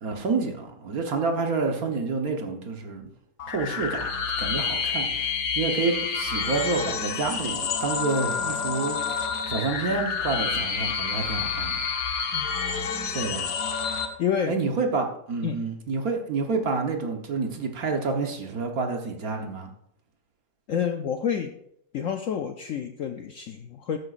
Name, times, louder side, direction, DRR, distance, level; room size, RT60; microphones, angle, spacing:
voice 1, 0.0-3.1 3.5-4.1 4.4-11.8 13.1-13.5 14.5-19.7, right 4 dB, 55° right, 3 dB, 1.5 m, -28 dB
sound 1, 3.4-14.1, left 6 dB, 55° left, 1.3 m, -28 dB
voice 2, 14.2-14.6 15.4-15.6 20.7-21.6 21.9-24.0, left 8 dB, 80° left, 6 dB, 0.7 m, -28 dB
13.5 x 9.0 x 2.5 m, 0.73 s
omnidirectional pair, 2.0 m